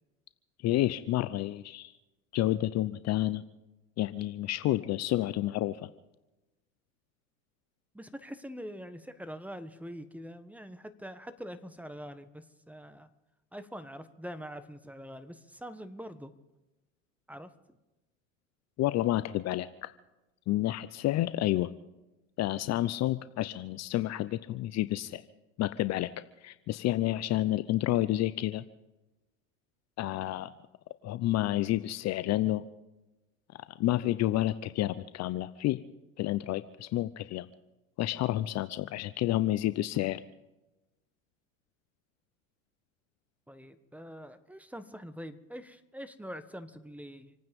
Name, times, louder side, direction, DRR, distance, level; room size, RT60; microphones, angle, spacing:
voice 1, 0.6-1.9 2.3-3.4 4.0-5.9 18.8-19.9 20.5-21.7 22.4-25.2 25.6-26.1 26.4-28.6 30.0-30.5 31.0-32.6 33.8-35.8 36.2-37.5 38.0-40.2, left 15 dB, 40° left, 14 dB, 0.7 m, -29 dB
voice 2, 7.9-13.1 13.5-16.3 17.3-17.5 43.5-47.3, equal, 5° right, 12 dB, 1.3 m, -44 dB
27.5 x 9.4 x 5.3 m, 1.0 s
hypercardioid pair, 95°, 39 cm